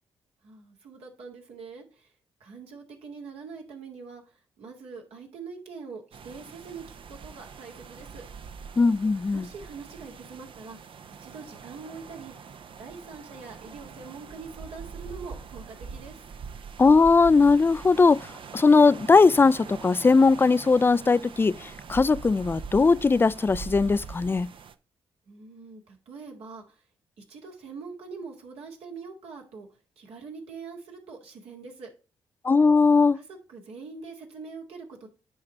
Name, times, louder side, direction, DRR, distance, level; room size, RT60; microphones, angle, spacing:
voice 1, 0.4-2.1 2.4-8.2 9.3-10.8 11.2-12.3 12.8-16.2 25.3-26.8 27.2-29.7 30.0-31.9 33.1-33.2 33.5-35.1, right 4 dB, 75° right, 1.8 m, -43 dB
sound 1, 6.1-24.7, right 6 dB, 55° right, 0.7 m, -43 dB
voice 2, 8.8-9.5 16.8-18.3 18.5-24.5 32.4-33.2, left 4 dB, 20° left, 0.3 m, -19 dB
9.8 x 3.3 x 3.9 m
hypercardioid pair, 40°, 10 cm